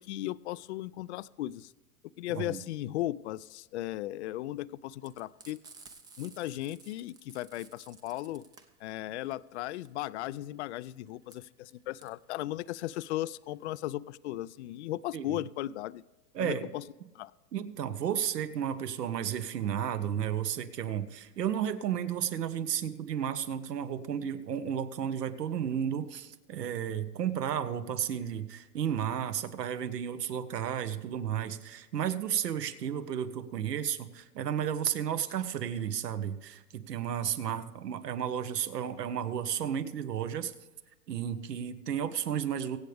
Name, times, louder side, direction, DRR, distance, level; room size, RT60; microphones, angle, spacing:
voice 1, 0.0-1.7 2.2-5.6 6.2-8.4 8.8-16.0 16.4-16.8 17.1-17.3, left 15 dB, 50° left, 19 dB, 0.4 m, -36 dB
Frying (food), 5.0-13.8, right 4 dB, 10° right, 0.5 m, -55 dB
voice 2, 16.3-16.7 17.5-40.5 41.1-42.8, right 9 dB, 80° right, 11 dB, 1.4 m, -33 dB
24.0 x 8.2 x 3.4 m, 1.1 s
hypercardioid pair, 140°, 47 cm